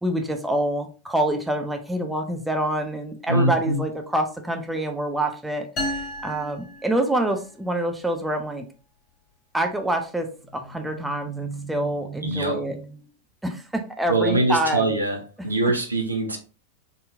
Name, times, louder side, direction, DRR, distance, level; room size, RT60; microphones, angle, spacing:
voice 1, 0.0-5.7 5.9-8.6 9.5-13.0 13.4-14.9, right 1 dB, 5° right, 4 dB, 0.6 m, -26 dB
voice 2, 3.3-3.8 12.2-12.6 14.1-15.2 15.4-16.4, right 2 dB, 80° right, 3 dB, 0.8 m, -23 dB
sound 1, 5.8-7.5, left 1 dB, 30° left, 1.7 m, -33 dB
4.0 x 3.8 x 2.5 m, 0.35 s
figure-of-eight pair, 90°, 0 cm